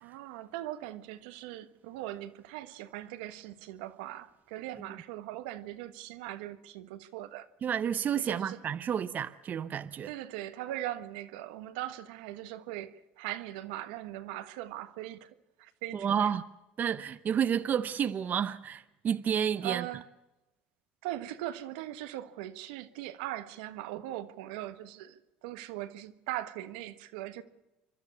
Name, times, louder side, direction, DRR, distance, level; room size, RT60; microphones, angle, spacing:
voice 1, 0.0-7.5 8.2-8.6 10.0-15.3 15.6-16.3 19.6-20.1 21.0-27.4, right 14 dB, 80° right, 1.3 m, -40 dB
voice 2, 7.6-10.1 15.9-16.4 16.8-19.9, right 8 dB, 40° right, 0.8 m, -30 dB
29.0 x 12.0 x 8.4 m
supercardioid pair, 85°, 4 cm